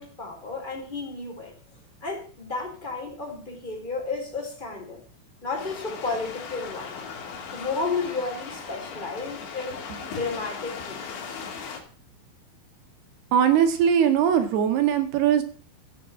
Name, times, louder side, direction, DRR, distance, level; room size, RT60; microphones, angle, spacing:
voice 1, 0.0-1.5 2.0-5.0 5.4-7.0 7.5-11.3, left 3 dB, 10° left, 1 dB, 4.0 m, -32 dB
sound 1, 5.6-11.8, left 6 dB, 85° left, 5.0 m, -38 dB
voice 2, 13.3-15.4, right 9 dB, 65° right, 7 dB, 3.5 m, -20 dB
15.5 x 7.3 x 7.5 m, 0.42 s
omnidirectional pair, 5.2 m